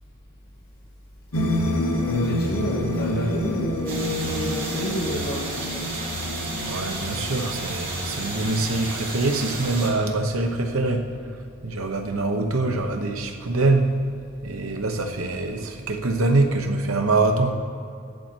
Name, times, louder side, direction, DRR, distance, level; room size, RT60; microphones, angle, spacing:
sound 1, 1.3-10.9, left 1 dB, 90° left, 1.6 m, -30 dB
voice 1, 2.0-5.6, left 1 dB, 50° left, -4 dB, 1.6 m, -28 dB
sound 2, 3.9-9.9, right 2 dB, 45° right, 3.3 m, -32 dB
voice 2, 6.7-11.1 11.6-14.0 14.4-17.5, right 2 dB, 85° right, 4 dB, 1.1 m, -24 dB
13.0 x 10.5 x 4.5 m, 2.5 s
head